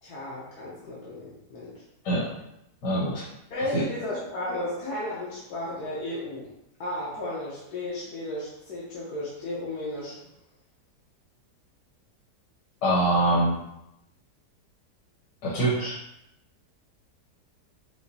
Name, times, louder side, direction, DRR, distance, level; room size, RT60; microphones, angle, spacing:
voice 1, 0.0-1.7 3.5-6.5 6.8-10.2, left 1 dB, 70° left, -7 dB, 1.4 m, -34 dB
voice 2, 2.8-3.3 3.7-3.9 12.8-13.6 15.4-16.0, right 1 dB, 85° left, -7 dB, 1.7 m, -24 dB
5.6 x 2.0 x 4.0 m, 0.82 s
omnidirectional pair, 1.8 m